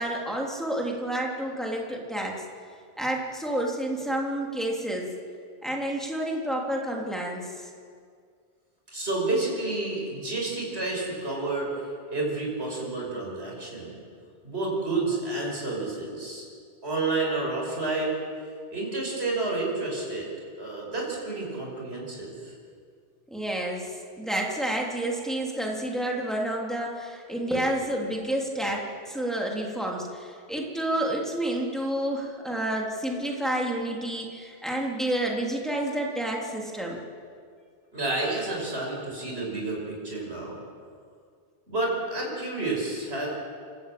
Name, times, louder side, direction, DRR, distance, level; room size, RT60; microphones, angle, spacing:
voice 1, 0.0-2.3 3.0-5.1 5.6-7.7 23.3-37.0, right 1 dB, ahead, -2 dB, 3.2 m, -29 dB
voice 2, 8.9-14.0 14.4-16.4 16.8-18.2 18.7-20.3 20.6-22.5 37.9-40.6 41.7-43.3, right 2 dB, 80° right, -2 dB, 6.0 m, -30 dB
28.5 x 13.5 x 8.6 m, 2.1 s
omnidirectional pair, 1.1 m